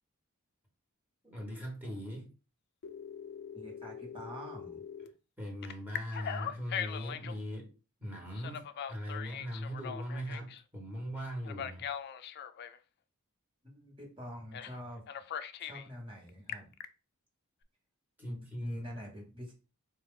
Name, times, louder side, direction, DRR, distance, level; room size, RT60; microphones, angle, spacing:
voice 1, 1.2-2.3 5.4-7.7 8.0-11.8 18.2-19.0, equal, 10° right, 1.1 m, -40 dB
Telephone, 2.8-5.1 5.6-7.4 8.3-10.6 11.4-12.8 14.5-14.8 15.1-15.9 16.3-16.8, left 9 dB, 50° left, 0.3 m, -41 dB
voice 2, 3.5-4.8 13.7-15.0 15.6-16.7 18.3-19.5, equal, 25° right, 1.3 m, -46 dB
4.2 x 2.4 x 3.6 m
head